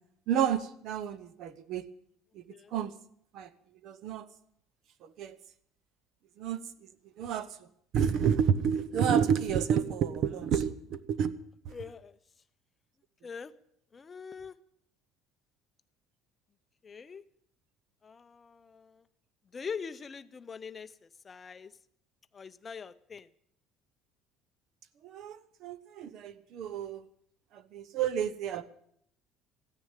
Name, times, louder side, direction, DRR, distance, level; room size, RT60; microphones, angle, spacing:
voice 1, 0.3-1.9 2.3-2.4 2.7-2.9 3.3-3.5 3.8-4.3 5.0-5.4 6.4-6.9 7.2-7.7 7.9-11.3 11.6-11.7 25.0-27.1 27.5-28.6, right 8 dB, 50° right, 15 dB, 0.9 m, -30 dB
voice 2, 11.7-12.2 13.2-13.5 13.9-14.6 16.8-17.2 18.0-19.1 19.5-21.8 22.3-23.3, left 6 dB, 20° left, 11 dB, 0.6 m, -43 dB
15.0 x 9.8 x 9.0 m, 0.68 s
cardioid pair, 170°, 0 cm